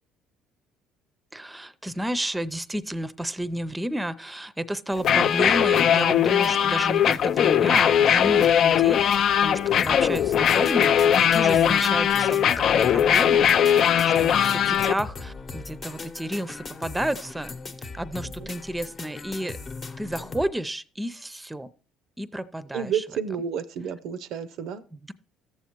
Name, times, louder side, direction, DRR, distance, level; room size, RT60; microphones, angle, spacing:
voice 1, 1.3-9.0 9.4-19.6 20.0-21.7 22.2-23.0 24.9-25.1, right 1 dB, 10° right, 0.6 m, -31 dB
sound 1, 5.0-14.9, left 9 dB, 60° left, 0.3 m, -20 dB
voice 2, 9.5-9.8 18.4-18.5 22.7-24.8, right 7 dB, 70° right, 0.5 m, -31 dB
sound 2, 9.8-20.5, left 4 dB, 40° left, 0.9 m, -39 dB
13.5 x 7.1 x 3.0 m
supercardioid pair, 70°, 0 cm